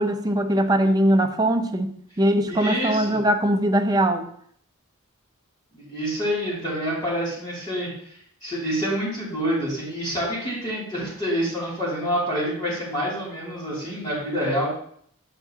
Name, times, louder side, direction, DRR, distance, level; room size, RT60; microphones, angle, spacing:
voice 1, 0.0-4.3, right 1 dB, 20° right, 6 dB, 0.5 m, -21 dB
voice 2, 2.5-3.2 5.7-7.9 8.4-14.7, equal, 20° left, -8 dB, 2.7 m, -27 dB
6.9 x 6.8 x 2.8 m, 0.63 s
head